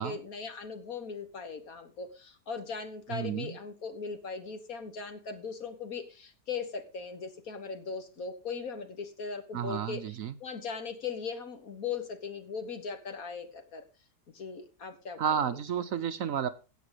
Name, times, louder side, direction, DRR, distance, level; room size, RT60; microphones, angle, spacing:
voice 1, 0.0-13.8 14.3-15.4, left 5 dB, 60° left, 8 dB, 2.0 m, -39 dB
voice 2, 3.1-3.6 9.5-10.4 15.2-16.5, right 8 dB, 60° right, 11 dB, 1.1 m, -31 dB
16.5 x 5.6 x 5.0 m, 0.32 s
omnidirectional pair, 1.7 m